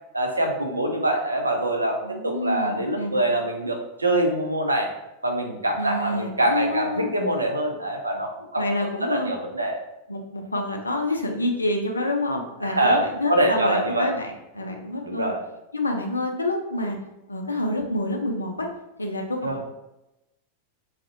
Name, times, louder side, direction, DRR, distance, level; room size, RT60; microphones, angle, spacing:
voice 1, 0.1-2.0 2.2-4.9 5.2-8.6 9.0-9.8 12.6-14.1 15.0-15.4 19.4-19.6, right 1 dB, 80° right, 2 dB, 0.4 m, -24 dB
voice 2, 2.0-3.4 5.8-7.1 8.6-9.4 10.1-15.3 15.7-17.0 17.3-18.7 19.0-19.6, left 1 dB, 80° left, 3 dB, 0.4 m, -28 dB
2.5 x 2.0 x 2.5 m, 0.91 s
figure-of-eight pair, 90°, 0 cm